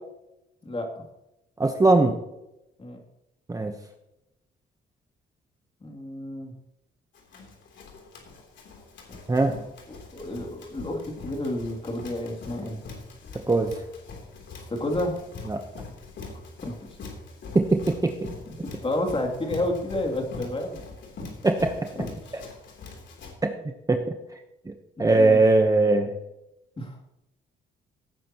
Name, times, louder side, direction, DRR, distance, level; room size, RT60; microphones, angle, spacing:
voice 1, 1.6-2.1 3.5-3.7 9.3-9.6 13.5-13.7 15.5-15.6 17.5-18.1 21.4-21.7 22.3-22.4 23.9-24.0 24.7-24.8 25.0-26.1, right 2 dB, 15° right, 5 dB, 1.0 m, -20 dB
voice 2, 5.8-6.5 9.9-12.8 14.7-15.2 16.6-16.7 18.8-20.8 21.9-22.1 25.2-25.4 26.8-27.0, left 1 dB, 30° left, 1 dB, 2.9 m, -30 dB
Run, 7.2-23.3, left 4 dB, 65° left, 3.4 m, -42 dB
17.5 x 9.4 x 3.0 m, 0.90 s
cardioid pair, 90°, 20 cm